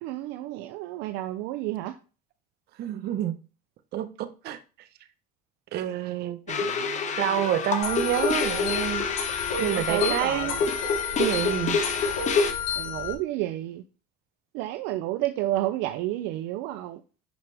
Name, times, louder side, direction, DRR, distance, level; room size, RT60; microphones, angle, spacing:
voice 1, 0.0-2.0 6.5-7.3 9.6-10.7 12.8-13.8 14.5-17.0, right 15 dB, 80° right, 0.6 m, -31 dB
voice 2, 2.8-3.3 3.9-4.6 5.7-6.4 7.2-9.0 9.6-10.5 11.2-11.8, right 11 dB, 65° right, 1.0 m, -28 dB
sound 1, 6.5-12.5, left 4 dB, 40° left, 1.4 m, -28 dB
sound 2, 7.8-13.1, left 7 dB, 85° left, 4.5 m, -31 dB
10.5 x 5.2 x 3.4 m
supercardioid pair, 100°, 18 cm